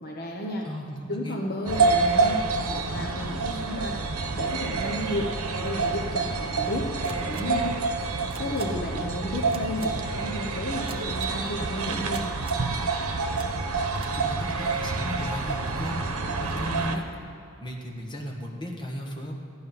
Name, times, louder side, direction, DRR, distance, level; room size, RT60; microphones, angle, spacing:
voice 1, 0.0-0.7 1.1-4.0 4.3-5.3 5.6-7.7 8.4-12.3, left 1 dB, 45° left, 0 dB, 1.1 m, -32 dB
voice 2, 0.6-1.4 14.1-16.0 16.4-17.0 17.6-19.3, equal, 20° left, -1 dB, 1.6 m, -35 dB
sound 1, 1.7-17.0, right 4 dB, 85° right, 1.0 m, -28 dB
sound 2, 7.0-7.4 8.3-8.6 9.5-9.9 10.9-11.3 12.1-12.6 13.4-13.5 13.9-14.1, right 5 dB, 25° right, 0.6 m, -43 dB
14.0 x 9.7 x 5.6 m, 2.7 s
head